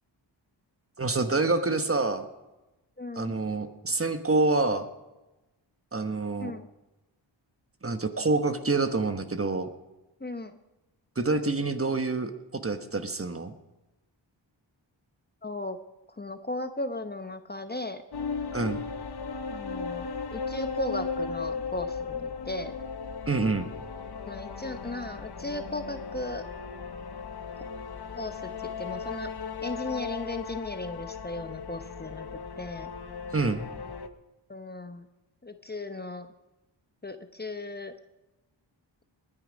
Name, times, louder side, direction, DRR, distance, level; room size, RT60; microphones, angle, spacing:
voice 1, 1.0-2.3 3.1-4.9 5.9-6.5 7.8-9.7 11.2-13.5 18.5-18.8 23.3-23.7 33.3-33.6, right 3 dB, 30° right, 8 dB, 1.3 m, -27 dB
voice 2, 3.0-3.4 6.4-6.7 10.2-10.5 15.4-15.8 16.2-18.0 19.5-20.1 20.3-22.8 24.3-26.4 28.1-29.3 29.6-32.9 34.5-35.0 35.4-36.3 37.0-37.9, left 2 dB, 20° left, 8 dB, 0.9 m, -36 dB
sound 1, 18.1-34.1, left 5 dB, 55° left, 1.1 m, -36 dB
19.5 x 9.8 x 5.2 m, 1.0 s
cardioid pair, 60°, 46 cm